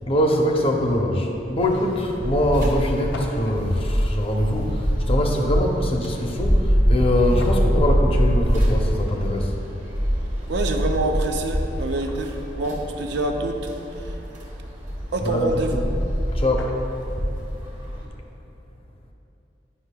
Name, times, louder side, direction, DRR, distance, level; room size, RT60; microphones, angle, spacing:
voice 1, 0.0-9.5 15.2-15.9 16.3-16.7, left 1 dB, 30° left, 1 dB, 0.6 m, -23 dB
sound 1, 1.6-18.1, equal, 45° right, 1.3 m, -25 dB
sound 2, 2.8-3.6 7.1-7.7 10.7-10.8 11.3-12.5 15.8-15.9 16.1-17.1, left 3 dB, 90° left, 0.6 m, -41 dB
voice 2, 10.5-13.7 14.0-14.1 15.1-15.9, right 2 dB, 70° right, 4 dB, 0.5 m, -26 dB
9.8 x 5.5 x 2.2 m, 2.9 s
head